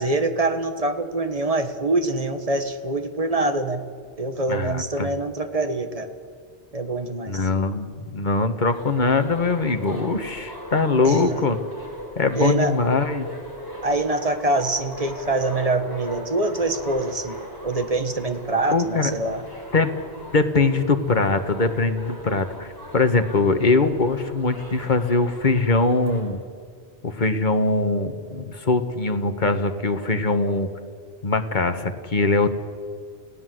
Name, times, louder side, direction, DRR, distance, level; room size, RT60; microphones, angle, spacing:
voice 1, 0.0-3.9 4.2-6.1 6.7-7.5 11.0-11.4 12.3-12.7 13.8-17.4 17.6-19.4, right 2 dB, 35° right, 8 dB, 1.6 m, -24 dB
voice 2, 4.5-5.1 7.3-11.6 12.1-13.3 18.7-19.1 19.7-19.9 20.3-22.7 22.9-26.4 27.0-30.7 31.2-32.5, left 3 dB, 45° left, 8 dB, 1.7 m, -22 dB
sound 1, 8.7-26.2, equal, 20° left, 4.9 m, -39 dB
29.5 x 17.0 x 7.9 m, 2.1 s
omnidirectional pair, 1.1 m